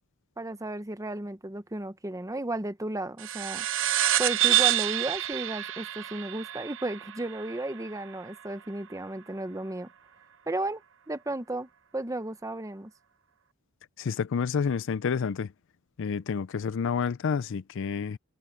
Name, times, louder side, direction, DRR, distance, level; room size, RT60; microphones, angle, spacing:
voice 1, 0.4-3.7 4.2-9.9 10.5-10.8 11.1-12.9, right 2 dB, 15° right, 0.9 m, -34 dB
sound 1, 3.2-8.1, right 13 dB, 65° right, 0.8 m, -28 dB
voice 2, 14.0-15.5 16.0-18.2, left 6 dB, 65° left, 0.4 m, -29 dB
head